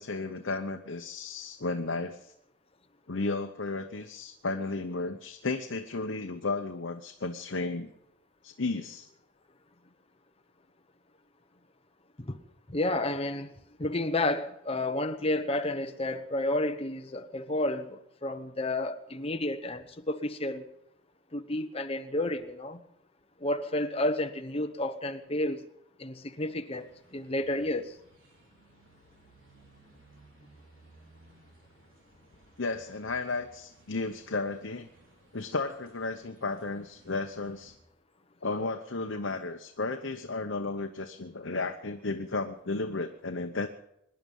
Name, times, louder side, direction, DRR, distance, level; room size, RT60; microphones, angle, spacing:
voice 1, 0.0-2.3 3.1-7.9 8.4-9.1 32.6-34.9 35.3-37.7 38.4-43.7, left 3 dB, 70° left, 0.9 m, -33 dB
voice 2, 12.7-13.5 13.8-20.7 21.3-22.8 23.4-25.6 26.0-27.9, left 1 dB, 30° left, 1.0 m, -31 dB
sound 1, 26.7-37.8, right 2 dB, 80° right, 4.2 m, -60 dB
24.5 x 10.5 x 5.5 m
head